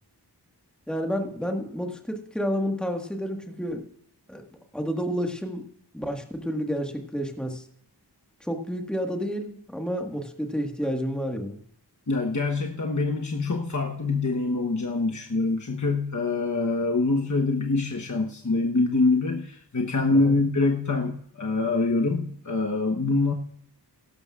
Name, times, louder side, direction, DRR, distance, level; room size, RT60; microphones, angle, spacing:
voice 1, 0.9-3.9 4.3-4.4 4.7-7.7 8.4-11.6 20.2-20.3, equal, ahead, 4 dB, 1.6 m, -30 dB
voice 2, 12.1-23.3, left 3 dB, 45° left, 1 dB, 1.1 m, -25 dB
17.0 x 12.0 x 2.4 m, 0.67 s
wide cardioid pair, 50°, 42 cm